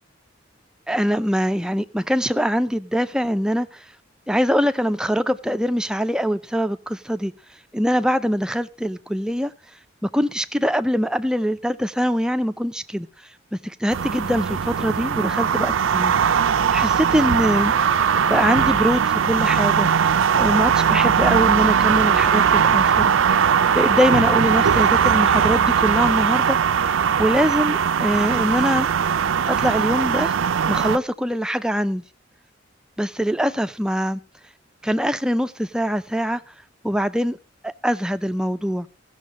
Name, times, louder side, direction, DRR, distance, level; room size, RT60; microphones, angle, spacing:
voice 1, 0.9-3.9 4.3-7.3 7.7-9.5 10.0-13.1 13.5-16.2 16.7-17.7 18.3-19.9 20.4-23.1 23.7-26.6 27.2-28.9 29.5-30.4 30.7-32.0 33.0-34.2 34.8-36.4 36.8-37.4 37.6-38.9, equal, 5° right, 0.4 m, -23 dB
sound 1, 13.9-31.0, right 7 dB, 80° right, 0.5 m, -19 dB
15.5 x 6.4 x 4.9 m
head